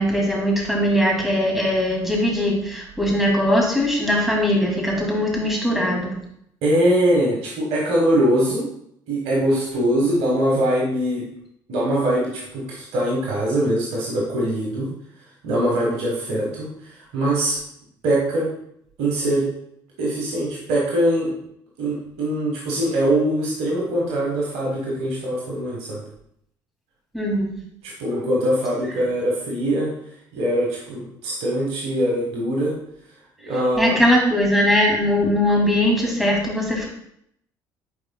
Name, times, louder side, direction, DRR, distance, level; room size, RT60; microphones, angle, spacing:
voice 1, 0.0-6.2 27.1-27.6 33.8-36.9, left 1 dB, ahead, -2 dB, 2.6 m, -20 dB
voice 2, 6.6-8.7 9.1-11.3 11.7-14.9 15.4-17.6 18.0-18.5 19.0-19.5 20.0-21.3 21.8-26.0 27.8-29.9 30.3-32.7 33.4-33.9, right 1 dB, 75° right, -3 dB, 1.5 m, -22 dB
9.3 x 4.7 x 2.3 m, 0.72 s
hypercardioid pair, 65°, 11 cm